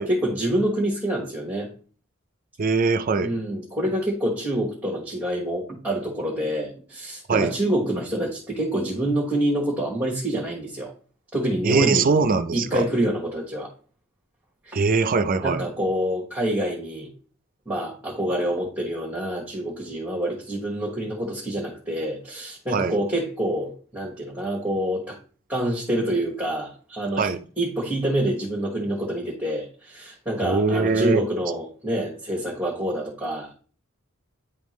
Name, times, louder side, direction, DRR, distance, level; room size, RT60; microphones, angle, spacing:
voice 1, 0.0-1.7 3.2-10.9 11.3-12.1 12.5-13.7 14.7-14.8 15.4-17.1 17.7-25.2 25.5-27.3 27.6-33.5, right 1 dB, 5° right, 1.3 m, -26 dB
voice 2, 2.6-3.3 7.3-7.5 11.6-12.8 14.7-15.6 22.7-22.9 27.2-27.4 30.4-31.2, right 4 dB, 40° right, 0.5 m, -22 dB
9.8 x 3.6 x 3.1 m
head